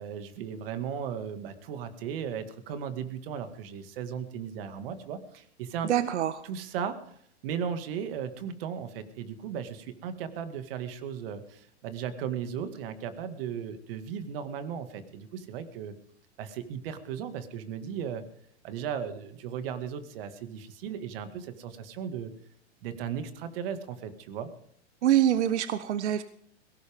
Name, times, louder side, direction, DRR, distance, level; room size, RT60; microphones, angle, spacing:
voice 1, 0.0-6.1 6.4-7.1 7.4-16.0 16.4-18.2 18.6-22.3 22.8-24.5, right 8 dB, 55° right, 9 dB, 2.1 m, -36 dB
voice 2, 5.8-6.4 25.0-26.2, right 11 dB, 80° right, 13 dB, 1.0 m, -25 dB
20.5 x 18.0 x 3.7 m, 0.65 s
hypercardioid pair, 140°, 34 cm